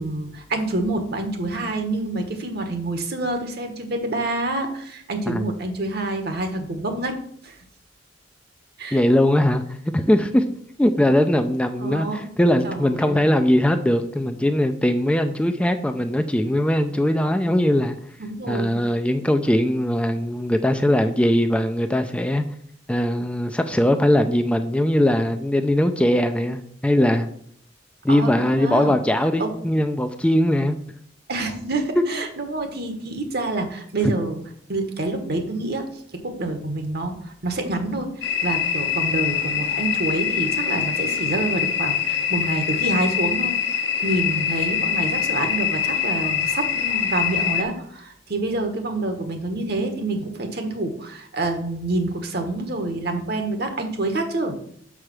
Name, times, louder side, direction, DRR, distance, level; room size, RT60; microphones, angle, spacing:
voice 1, 0.0-7.2 7.4-7.5 8.8-9.0 11.8-12.3 12.6-13.2 18.2-18.7 28.1-28.9 29.4-29.5 31.3-34.4 34.7-35.9 36.2-43.5 44.0-54.6, right 2 dB, 60° right, 6 dB, 1.3 m, -27 dB
voice 2, 8.9-9.6 9.9-10.4 10.8-18.0 18.5-22.4 22.9-27.3 28.0-30.8 32.0-32.2 34.0-34.1, left 1 dB, 5° left, 7 dB, 0.4 m, -20 dB
sound 1, 38.2-47.6, left 8 dB, 65° left, 1.0 m, -24 dB
6.5 x 4.9 x 6.0 m, 0.64 s
head